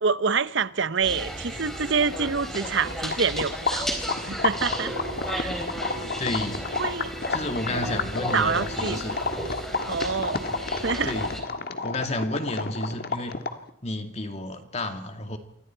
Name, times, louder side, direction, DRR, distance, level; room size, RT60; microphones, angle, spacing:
voice 1, 0.0-3.9 4.2-4.9 5.3-5.5 6.7-7.1 7.7-8.0 8.3-9.1 9.9-10.4 10.8-11.1, right 5 dB, 60° right, 0.8 m, -26 dB
sound 1, 1.0-11.4, equal, ahead, 3.9 m, -34 dB
sound 2, 2.0-13.7, left 3 dB, 45° left, 1.6 m, -31 dB
voice 2, 6.2-6.7 7.3-9.2 11.0-11.4 11.8-13.4 13.8-15.4, left 1 dB, 30° left, 2.3 m, -31 dB
28.5 x 24.0 x 4.5 m
head